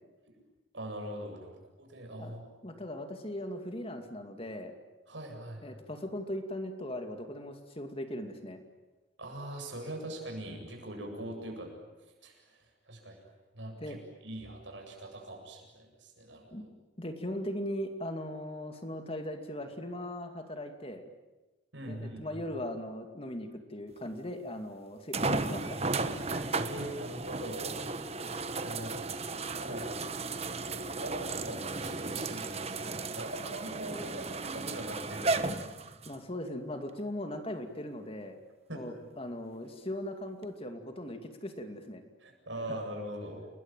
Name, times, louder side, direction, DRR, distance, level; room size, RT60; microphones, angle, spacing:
voice 1, 0.7-1.5 1.8-2.5 5.1-5.7 9.2-11.7 12.0-13.2 13.5-14.0 14.2-16.7 21.7-22.4 26.0-27.7 28.0-28.1 28.6-30.0 30.3-35.9 38.7-38.8 42.2-43.5, right 1 dB, 70° right, 2 dB, 7.9 m, -42 dB
voice 2, 2.6-4.7 5.6-8.6 13.8-14.0 16.5-16.6 17.0-21.0 21.9-25.8 33.9-34.0 36.1-38.4 38.7-42.0 42.7-42.8, left 1 dB, 30° left, 6 dB, 2.4 m, -39 dB
sound 1, 24.0-24.1 25.1-36.2 36.9-37.0 40.4-40.5, right 3 dB, 35° right, 1.3 m, -35 dB
29.5 x 21.5 x 9.2 m, 1.1 s
head